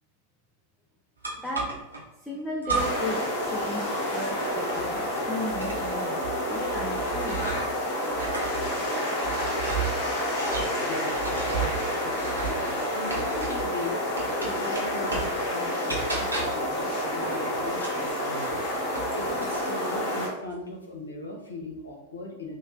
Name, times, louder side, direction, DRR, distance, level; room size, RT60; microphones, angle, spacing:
sound 1, 1.2-2.0 2.6-3.2 3.5-7.8 8.1-13.8 14.2-15.4 15.9-16.7 17.7-19.1 19.4-20.0, right 4 dB, 80° right, 0.8 m, -34 dB
voice 1, 1.4-1.8 2.2-7.5, left 1 dB, 5° left, -3 dB, 0.5 m, -35 dB
sound 2, 2.7-20.3, left 1 dB, 40° left, 1.0 m, -29 dB
voice 2, 10.8-11.4 12.0-14.0 14.4-15.2 15.5-18.7 19.1-22.6, left 2 dB, 75° left, -1 dB, 0.8 m, -39 dB
3.1 x 2.3 x 3.2 m, 0.87 s
figure-of-eight pair, 90°, 0 cm